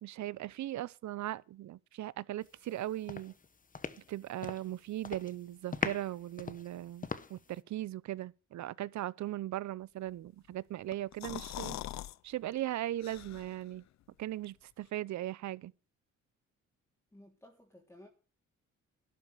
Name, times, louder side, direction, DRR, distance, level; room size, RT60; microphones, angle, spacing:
voice 1, 0.0-3.3 4.1-11.8 12.2-13.8 14.2-15.7, right 14 dB, 70° right, 0.8 m, -38 dB
sound 1, 2.6-2.8 3.1-4.7 5.0-5.4 5.7-7.6, left 4 dB, 25° left, 1.2 m, -40 dB
sound 2, 10.9-12.2 12.5-12.6 13.0-13.7, left 13 dB, 65° left, 0.7 m, -42 dB
voice 2, 17.1-18.1, left 1 dB, 10° left, 3.3 m, -56 dB
12.5 x 10.5 x 6.7 m
cardioid pair, 90°, 30 cm